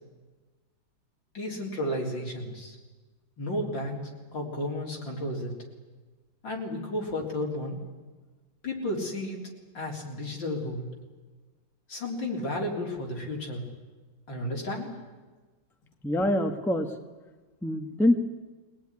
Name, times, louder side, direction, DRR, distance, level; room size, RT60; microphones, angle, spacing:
voice 1, 1.3-2.8 3.4-4.0 4.3-5.5 6.4-7.8 8.6-10.9 11.9-13.7 14.3-15.0, left 1 dB, 80° left, -1 dB, 4.4 m, -33 dB
voice 2, 16.0-16.9 17.6-18.2, left 1 dB, ahead, 5 dB, 1.1 m, -24 dB
22.0 x 18.5 x 9.7 m, 1.3 s
omnidirectional pair, 2.0 m